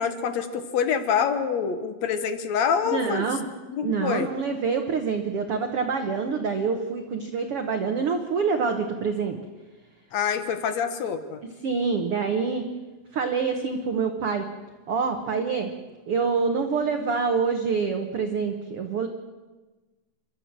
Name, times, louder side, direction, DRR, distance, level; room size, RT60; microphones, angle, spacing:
voice 1, 0.0-3.3 3.7-4.3 10.1-11.4, left 7 dB, 65° left, 9 dB, 1.9 m, -26 dB
voice 2, 2.8-3.4 3.8-9.4 11.6-12.6 13.1-14.5 14.9-15.7 16.1-19.1, right 5 dB, 85° right, 5 dB, 1.3 m, -26 dB
29.5 x 13.0 x 7.4 m, 1.2 s
omnidirectional pair, 4.4 m